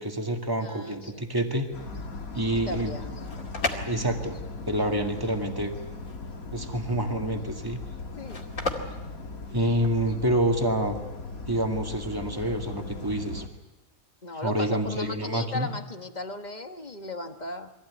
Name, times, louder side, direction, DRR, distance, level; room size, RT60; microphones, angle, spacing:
voice 1, 0.0-1.7 2.3-2.9 3.9-4.4 4.7-5.7 6.5-7.8 9.5-11.0 11.5-13.4 14.4-15.7, right 1 dB, 15° right, 3 dB, 2.1 m, -27 dB
voice 2, 0.6-1.3 2.6-3.5 4.9-5.0 8.2-8.4 14.2-17.7, left 2 dB, 35° left, 7 dB, 1.4 m, -37 dB
sound 1, 1.7-13.5, left 3 dB, 90° left, 2.2 m, -38 dB
sound 2, 3.1-10.1, left 3 dB, 70° left, 2.9 m, -36 dB
23.0 x 16.0 x 9.7 m, 1.1 s
omnidirectional pair, 1.4 m